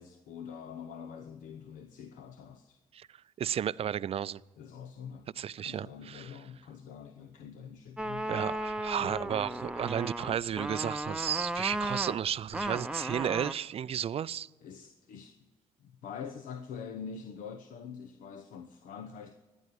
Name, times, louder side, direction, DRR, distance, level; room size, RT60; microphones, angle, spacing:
voice 1, 0.0-2.8 4.6-5.3 5.6-8.3 9.0-9.2 14.6-15.5 15.8-19.3, left 7 dB, 70° left, 0.9 m, -45 dB
voice 2, 3.4-4.4 5.4-6.3 8.3-14.5, right 9 dB, 45° right, 0.4 m, -33 dB
sound 1, 8.0-13.5, right 1 dB, 5° right, 0.8 m, -35 dB
13.5 x 9.9 x 9.7 m
hypercardioid pair, 55°, 14 cm